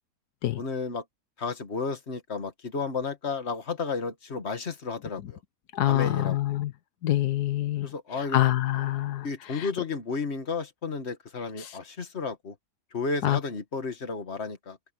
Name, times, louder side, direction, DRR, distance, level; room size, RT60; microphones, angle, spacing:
voice 1, 0.6-1.0 1.4-5.4 5.9-6.4 7.8-8.4 9.2-12.6 12.9-14.8, left 4 dB, 45° left, 2.0 m, -32 dB
voice 2, 5.7-6.7 7.0-9.7 11.6-11.8 13.2-13.4, left 13 dB, 85° left, 1.4 m, -26 dB
open air
omnidirectional pair, 1.7 m